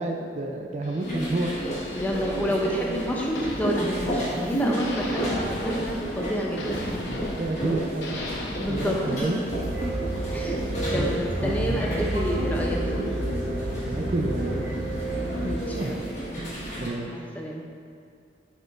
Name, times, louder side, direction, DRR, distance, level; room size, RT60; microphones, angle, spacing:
voice 1, 0.0-1.5 1.9-2.0 7.4-8.2 8.7-9.4 9.8-10.1 10.4-10.5 10.9-11.1 11.4-12.0 13.9-14.9 15.4-16.1 16.4-17.2, right 2 dB, 40° right, 1 dB, 0.4 m, -31 dB
sound 1, 0.8-4.5 4.8-8.8, left 1 dB, 80° left, 0.8 m, -38 dB
sound 2, 1.0-16.9, right 1 dB, 40° left, 1.5 m, -31 dB
voice 2, 1.9-7.2 8.6-9.3 10.3-10.7 10.9-13.0 15.4-16.0 17.1-17.6, equal, 10° left, -2 dB, 0.5 m, -29 dB
sound 3, 9.5-15.6, right 1 dB, 85° right, 0.7 m, -30 dB
9.3 x 4.4 x 2.5 m, 2.3 s
head